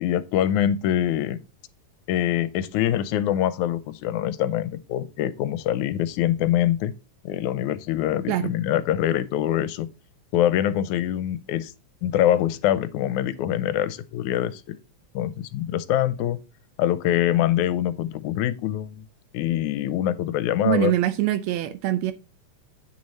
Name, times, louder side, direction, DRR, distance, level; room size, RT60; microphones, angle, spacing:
voice 1, 0.0-1.4 2.1-6.9 7.2-9.9 10.3-11.7 12.0-14.8 15.2-16.4 16.8-19.0 19.3-20.9, left 11 dB, 85° left, 2.1 m, -24 dB
voice 2, 20.6-22.1, right 13 dB, 75° right, 1.8 m, -23 dB
8.6 x 6.4 x 4.1 m
omnidirectional pair, 3.5 m